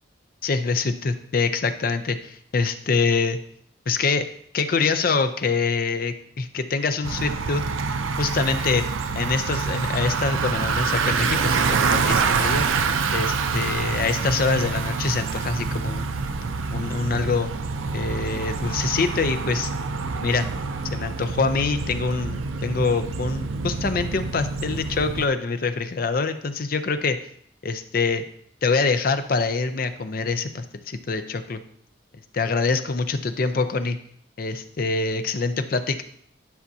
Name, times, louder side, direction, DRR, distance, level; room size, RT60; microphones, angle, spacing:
voice 1, 0.4-3.4 3.9-4.3 4.5-7.6 8.2-8.9 9.2-12.7 13.1-16.1 16.7-17.5 17.9-19.7 20.2-20.5 20.9-27.2 27.6-28.2 28.6-31.6 32.3-34.0 34.4-36.0, left 4 dB, 45° left, 10 dB, 0.5 m, -25 dB
Bicycle, 7.0-25.3, right 4 dB, 85° right, 0.5 m, -26 dB
10.5 x 5.7 x 2.8 m, 0.65 s
head